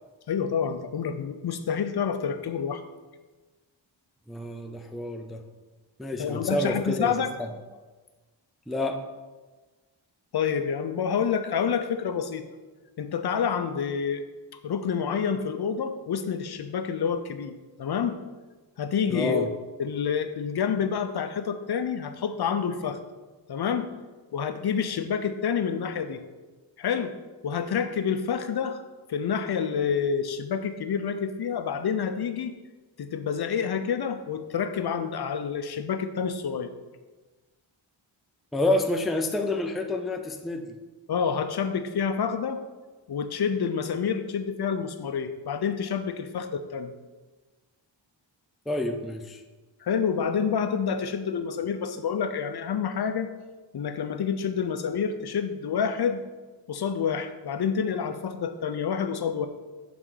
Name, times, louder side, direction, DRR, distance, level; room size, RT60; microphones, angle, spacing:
voice 1, 0.3-2.8 6.2-7.3 10.3-12.5 13.0-14.3 14.6-18.2 18.8-19.5 19.8-23.0 23.5-23.9 24.3-26.2 26.8-27.1 27.4-28.8 29.1-32.5 33.0-36.7 41.1-42.6 43.1-46.9 49.8-53.3 53.7-56.2 56.7-59.5, left 7 dB, 55° left, 9 dB, 0.5 m, -28 dB
voice 2, 4.3-5.4 6.0-7.1 7.4-7.5 8.7-9.0 19.1-19.5 38.5-40.7 48.7-49.4, left 2 dB, ahead, 5 dB, 0.4 m, -28 dB
6.3 x 4.0 x 3.8 m, 1.3 s
wide cardioid pair, 80°, 46 cm